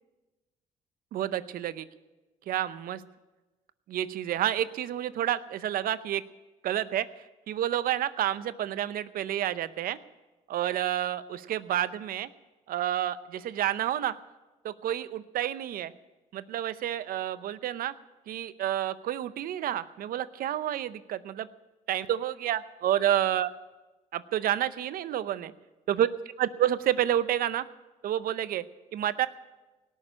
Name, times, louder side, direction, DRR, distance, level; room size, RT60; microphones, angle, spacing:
voice 1, 1.1-1.8 2.5-3.0 3.9-6.2 6.6-10.0 10.5-12.3 12.7-14.2 14.6-15.9 16.3-17.9 18.3-21.5 21.9-23.5 24.1-25.5 25.9-26.1 26.4-27.6 28.0-28.6 28.9-29.3, right 11 dB, 70° right, 15 dB, 0.7 m, -29 dB
18.0 x 6.5 x 9.9 m, 1.1 s
cardioid pair, 75°, 15 cm